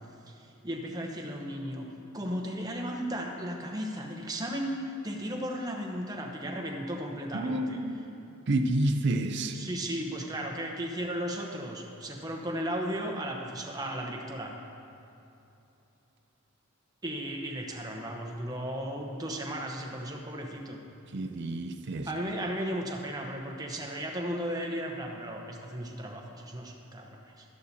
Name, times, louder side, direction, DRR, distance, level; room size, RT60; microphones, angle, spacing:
voice 1, 0.3-1.9 2.1-7.8 9.5-14.5 17.0-20.8 22.0-27.4, equal, 20° right, 1 dB, 0.9 m, -35 dB
voice 2, 7.3-7.9 8.5-9.6 21.1-22.1, right 1 dB, 55° right, 7 dB, 0.5 m, -29 dB
12.5 x 11.5 x 2.8 m, 2.9 s
head